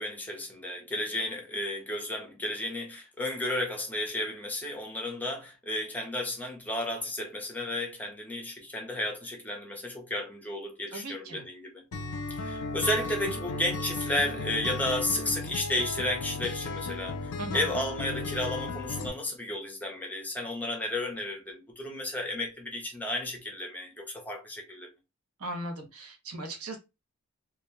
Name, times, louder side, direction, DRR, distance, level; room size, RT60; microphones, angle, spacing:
voice 1, 0.0-11.8 12.3-24.9, left 1 dB, 5° left, 0.6 m, -33 dB
voice 2, 10.9-11.4 17.4-17.7 25.4-26.8, right 1 dB, 80° right, 0.8 m, -38 dB
Acoustic guitar, 11.9-19.1, left 3 dB, 85° left, 0.5 m, -35 dB
2.3 x 2.1 x 3.0 m
head